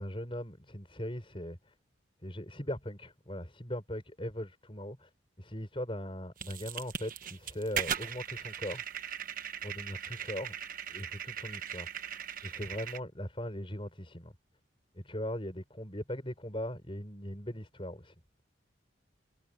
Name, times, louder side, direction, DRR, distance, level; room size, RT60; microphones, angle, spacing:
voice 1, 0.0-1.7 2.2-5.1 5.4-8.8 9.6-10.6 10.9-11.9 12.4-14.3 14.9-18.1, equal, 25° left, 6.5 m, -39 dB
sound 1, 6.4-13.0, right 8 dB, 45° right, 1.2 m, -39 dB
head